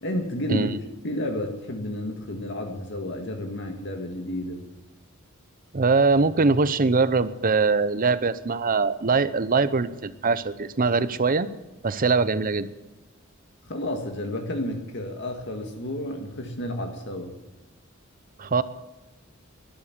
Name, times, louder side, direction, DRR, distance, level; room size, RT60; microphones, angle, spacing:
voice 1, 0.0-0.7 1.0-4.6 13.7-17.4, left 1 dB, 60° left, 4 dB, 1.9 m, -31 dB
voice 2, 5.7-11.5 11.8-12.7 18.4-18.6, right 4 dB, 40° right, 14 dB, 0.7 m, -22 dB
12.0 x 11.5 x 9.6 m, 1.1 s
head